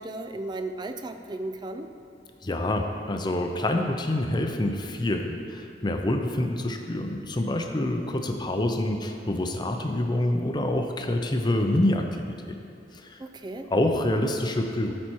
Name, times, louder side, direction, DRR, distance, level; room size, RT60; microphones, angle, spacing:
voice 1, 0.0-1.9 13.2-13.7, right 2 dB, 25° right, 7 dB, 0.4 m, -35 dB
voice 2, 2.4-12.3 13.1-13.2 13.7-14.9, left 1 dB, 25° left, 4 dB, 0.6 m, -26 dB
12.5 x 4.4 x 4.5 m, 2.6 s
head